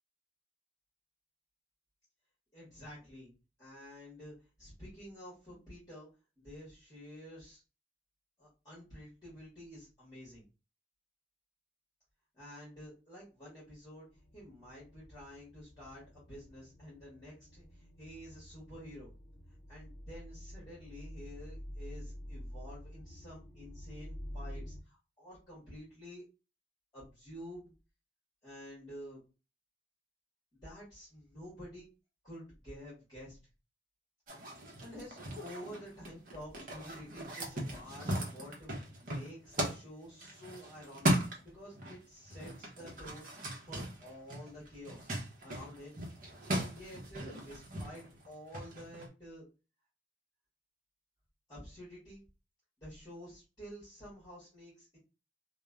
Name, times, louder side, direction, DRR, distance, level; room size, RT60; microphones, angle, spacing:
voice 1, 2.5-3.3 3.6-6.1 6.4-7.6 8.4-10.4 12.3-14.0 14.3-19.1 19.7-26.2 26.9-27.7 28.4-29.2 30.5-31.9 32.2-33.4 34.8-41.2 41.5-45.1 45.4-46.0 46.6-49.5 51.5-52.2 52.8-55.0, equal, 20° left, -8 dB, 1.4 m, -50 dB
sound 1, 14.1-24.8, equal, 60° left, 0.6 m, -48 dB
sound 2, 34.3-42.0 42.2-49.1, right 1 dB, 45° right, 0.8 m, -38 dB
3.0 x 2.1 x 2.4 m, 0.31 s
head